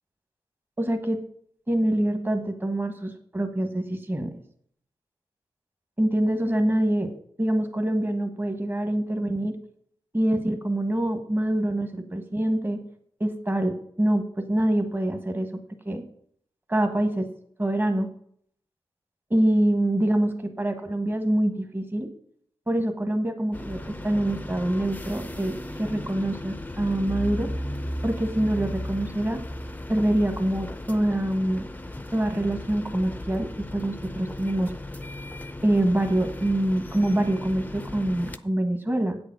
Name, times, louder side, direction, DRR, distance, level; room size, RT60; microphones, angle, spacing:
voice 1, 0.8-1.2 1.7-4.3 6.0-7.1 7.4-9.5 10.1-12.8 13.2-15.5 15.8-16.0 16.7-17.3 17.6-18.1 19.3-22.1 22.7-27.5 28.0-29.4 29.9-31.7 32.1-34.7 35.6-39.2, right 1 dB, 20° right, 6 dB, 1.3 m, -25 dB
sound 1, 23.5-38.4, left 1 dB, 15° left, 0.6 m, -36 dB
8.3 x 6.9 x 6.1 m, 0.64 s
cardioid pair, 65°, 10 cm